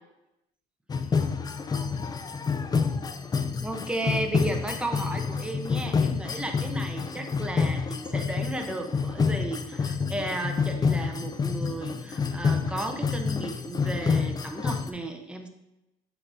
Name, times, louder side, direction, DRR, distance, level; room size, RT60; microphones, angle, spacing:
sound 1, 0.9-14.9, left 5 dB, 25° left, 0.4 m, -28 dB
voice 1, 3.6-15.5, right 1 dB, 5° right, 3 dB, 0.8 m, -34 dB
6.8 x 5.9 x 2.7 m, 0.92 s
cardioid pair, 110°, 17 cm